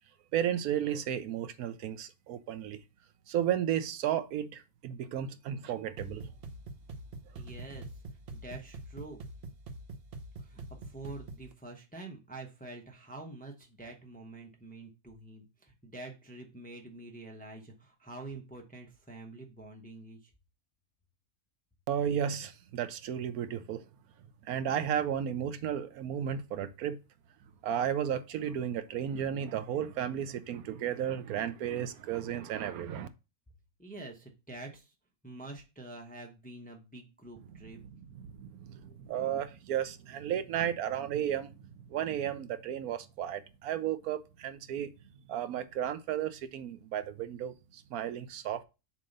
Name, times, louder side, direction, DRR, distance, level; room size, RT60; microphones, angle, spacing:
voice 1, 0.3-2.8 3.3-6.3 21.9-23.8 24.4-27.0 27.6-33.1 37.8-41.5 41.9-44.9 45.3-48.6, right 9 dB, 75° right, 1.0 m, -33 dB
sound 1, 6.0-11.5, right 2 dB, 55° right, 0.7 m, -45 dB
voice 2, 7.4-8.0 8.3-9.2 10.4-20.3 33.8-34.9 35.2-37.8, right 2 dB, 5° left, 0.7 m, -47 dB
7.1 x 2.9 x 5.2 m
omnidirectional pair, 1.6 m